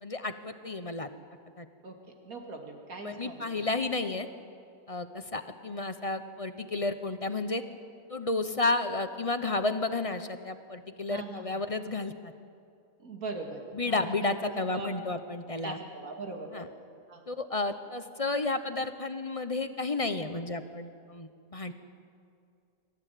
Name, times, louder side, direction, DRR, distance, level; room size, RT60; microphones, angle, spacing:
voice 1, 0.0-1.1 1.6-1.7 3.0-4.3 4.9-7.6 8.1-12.3 13.7-15.8 16.5-16.7 17.3-21.7, left 2 dB, 30° left, 9 dB, 0.8 m, -32 dB
voice 2, 1.8-3.8 11.1-11.6 13.0-14.9 15.6-16.7 17.1-17.2, right 3 dB, 75° right, 3 dB, 2.7 m, -41 dB
25.5 x 14.5 x 9.2 m, 2.4 s
omnidirectional pair, 1.5 m